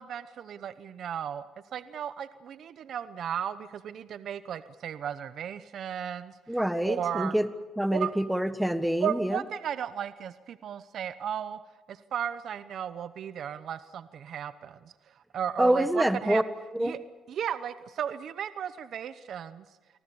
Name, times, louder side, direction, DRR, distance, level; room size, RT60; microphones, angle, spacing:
voice 1, 0.0-1.4 1.7-6.3 6.8-7.3 7.9-8.1 9.0-11.6 11.9-14.9 15.3-16.4 16.8-17.0 17.3-19.6, right 9 dB, 65° right, 13 dB, 0.8 m, -35 dB
voice 2, 6.5-7.5 7.8-9.4 15.6-16.4 16.7-17.0, right 1 dB, 5° right, 11 dB, 1.5 m, -26 dB
28.5 x 19.5 x 7.1 m, 1.2 s
cardioid pair, 90°, 0 cm